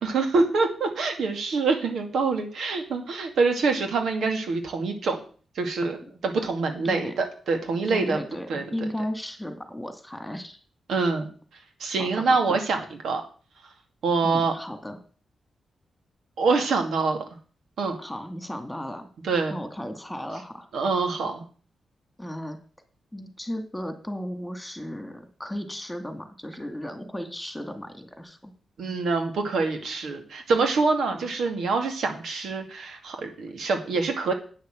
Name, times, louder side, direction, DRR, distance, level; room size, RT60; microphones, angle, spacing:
voice 1, 0.0-5.2 5.6-8.2 8.5-8.6 10.9-11.3 11.8-13.2 14.0-14.5 16.4-17.2 17.8-18.0 19.2-19.6 20.7-21.4 28.8-34.3, right 4 dB, 80° right, 5 dB, 2.3 m, -25 dB
voice 2, 7.9-10.6 12.0-12.6 14.2-15.0 18.0-19.1 19.5-20.7 22.2-22.6 23.1-28.5 31.1-31.3, equal, 10° left, 7 dB, 2.3 m, -35 dB
9.0 x 6.5 x 7.7 m, 0.41 s
cardioid pair, 60°, 0 cm